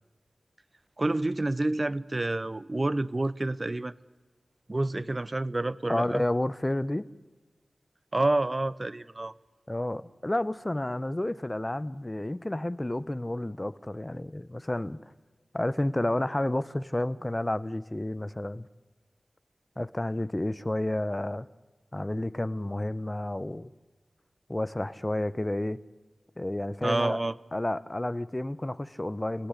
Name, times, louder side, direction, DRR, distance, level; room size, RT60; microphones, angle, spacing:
voice 1, 1.0-3.9 4.7-6.2 8.1-9.3 26.8-27.3, right 2 dB, 40° right, 18 dB, 0.8 m, -28 dB
voice 2, 5.9-7.1 9.7-15.0 15.5-18.7 19.8-21.5 21.9-23.7 24.5-25.8 26.4-27.2 27.5-29.5, left 1 dB, 25° left, 16 dB, 1.0 m, -30 dB
29.0 x 18.0 x 8.4 m, 1.3 s
cardioid pair, 50°, 0 cm